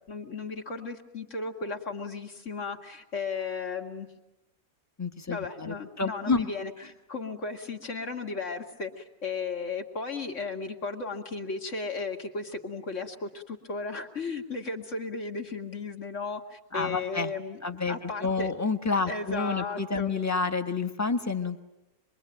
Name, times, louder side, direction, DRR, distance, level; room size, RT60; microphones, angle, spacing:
voice 1, 0.1-4.1 5.3-6.7 7.1-17.6 17.9-18.5 19.1-20.1, left 4 dB, 50° left, 3 dB, 2.3 m, -35 dB
voice 2, 5.0-6.5 16.7-17.3 17.6-21.6, left 4 dB, 10° left, 7 dB, 1.1 m, -29 dB
26.0 x 22.0 x 9.1 m, 0.99 s
omnidirectional pair, 1.6 m